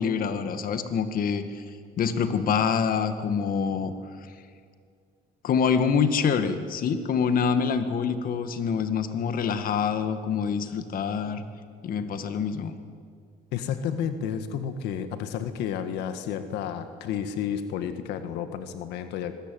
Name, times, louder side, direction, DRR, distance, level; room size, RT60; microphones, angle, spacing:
voice 1, 0.0-1.6 2.0-3.9 5.4-11.4 11.8-12.7, left 6 dB, 60° left, 9 dB, 2.0 m, -26 dB
voice 2, 13.5-19.3, left 8 dB, 90° left, 9 dB, 1.6 m, -31 dB
25.0 x 21.0 x 9.4 m, 2.1 s
cardioid pair, 110°, 17 cm